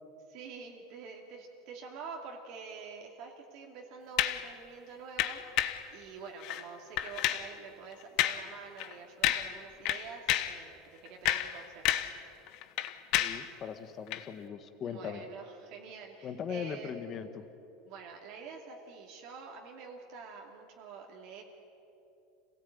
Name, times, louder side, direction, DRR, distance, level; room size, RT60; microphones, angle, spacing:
voice 1, 0.3-12.1 14.8-17.0 17.9-21.4, right 5 dB, 50° right, 0 dB, 2.5 m, -47 dB
sound 1, 4.2-4.5 5.2-5.9 6.4-6.6 7.0-7.5 8.2-8.5 8.8-8.9 9.2-9.6 9.9-10.6 11.1-12.2 12.5-13.5 14.1-14.2, left 13 dB, 50° left, 1.1 m, -30 dB
voice 2, 13.2-15.2 16.2-17.4, left 7 dB, 30° left, 9 dB, 1.3 m, -39 dB
26.5 x 17.5 x 9.4 m, 2.8 s
supercardioid pair, 155°, 0 cm